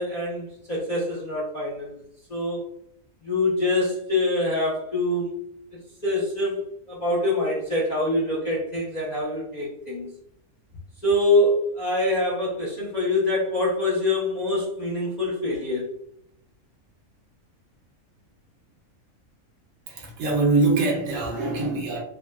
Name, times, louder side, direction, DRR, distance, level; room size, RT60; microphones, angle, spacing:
voice 1, 0.0-2.0 2.3-2.6 3.2-5.4 6.0-10.1 11.0-15.9, left 2 dB, 45° left, -7 dB, 0.5 m, -25 dB
voice 2, 19.9-22.0, right 3 dB, 70° right, 0 dB, 0.9 m, -23 dB
3.2 x 2.0 x 2.2 m, 0.71 s
omnidirectional pair, 1.5 m